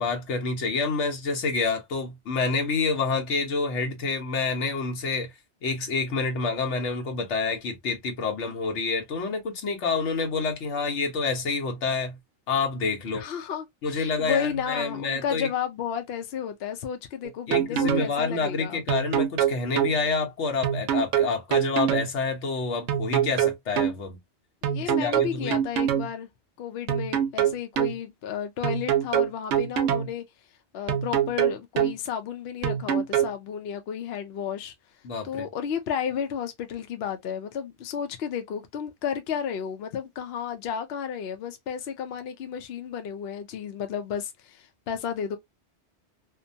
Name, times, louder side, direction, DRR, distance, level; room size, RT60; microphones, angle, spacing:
voice 1, 0.0-5.3 5.6-12.2 12.5-13.2 13.8-15.5 17.5-24.2 24.8-25.6 35.0-35.5, left 4 dB, 90° left, 1.2 m, -28 dB
voice 2, 13.1-18.8 24.6-26.3 26.6-30.2 30.7-34.7 35.2-45.4, left 8 dB, 65° left, 0.8 m, -32 dB
sound 1, 17.2-18.1 18.9-19.9 20.6-22.1 22.9-23.9 24.6-26.1 26.9-27.9 28.6-30.1 30.9-31.9 32.6-33.3, right 10 dB, 80° right, 0.9 m, -24 dB
2.7 x 2.2 x 2.5 m
omnidirectional pair, 1.2 m